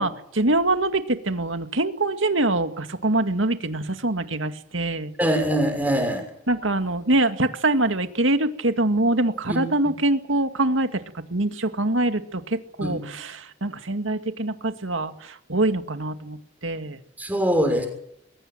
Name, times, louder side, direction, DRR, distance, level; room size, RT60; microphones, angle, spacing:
voice 1, 0.0-5.1 6.5-11.0 11.3-16.4 16.6-17.0, right 2 dB, 85° right, 8 dB, 2.1 m, -24 dB
voice 2, 5.2-6.2 9.5-9.6 12.8-13.0 17.2-17.9, equal, 10° right, 5 dB, 6.3 m, -22 dB
22.5 x 19.5 x 7.8 m, 0.75 s
head